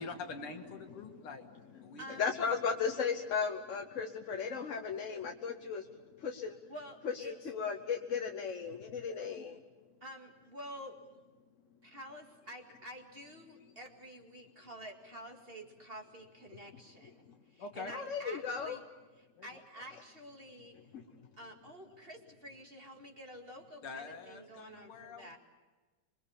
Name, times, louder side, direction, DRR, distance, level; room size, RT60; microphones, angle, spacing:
voice 1, 0.0-1.5 1.8-2.2 17.6-18.0 19.4-19.5 23.8-25.4, left 4 dB, 80° left, 4 dB, 2.7 m, -45 dB
voice 2, 1.7-6.7 7.0-9.6 17.2-17.4 17.9-18.8 20.7-21.3, left 6 dB, 50° left, 4 dB, 1.0 m, -36 dB
voice 3, 6.7-7.3 10.0-11.0 11.8-18.8 19.4-20.8 21.4-25.4, equal, 25° right, 2 dB, 2.1 m, -49 dB
26.5 x 22.0 x 7.1 m, 1.3 s
omnidirectional pair, 2.4 m